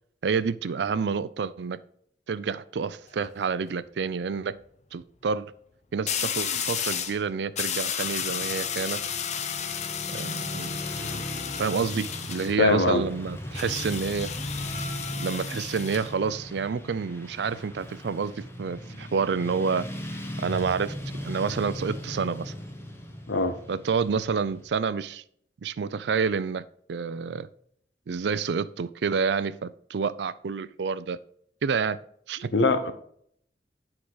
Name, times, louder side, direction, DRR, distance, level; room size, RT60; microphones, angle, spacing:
voice 1, 0.2-1.8 2.3-4.6 4.9-5.5 5.9-9.0 10.1-11.2 11.6-14.3 15.2-19.9 20.4-20.9 21.2-22.5 23.7-25.2 25.6-27.5 28.1-31.2 31.6-32.0 32.3-32.5, right 5 dB, 70° right, 0.4 m, -29 dB
sound 1, 2.9-3.2 6.1-7.2 7.5-12.5 13.5-16.1, left 8 dB, 40° left, 0.6 m, -32 dB
Motorcycle / Traffic noise roadway noise, 8.0-24.7, equal, 15° left, 1.1 m, -38 dB
voice 2, 12.6-13.0 23.3-23.6 32.5-32.9, left 3 dB, 85° left, 0.8 m, -22 dB
8.5 x 4.9 x 3.8 m
head